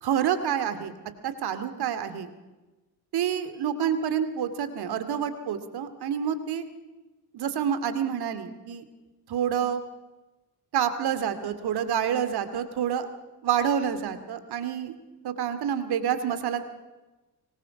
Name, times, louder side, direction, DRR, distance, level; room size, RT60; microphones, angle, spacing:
voice 1, 0.0-0.9 1.2-2.3 3.1-6.6 7.3-8.8 9.3-9.8 10.7-13.1 13.4-14.9 15.2-16.6, right 8 dB, 55° right, 10 dB, 2.5 m, -28 dB
24.5 x 20.5 x 6.1 m, 1.1 s
figure-of-eight pair, 45°, 47 cm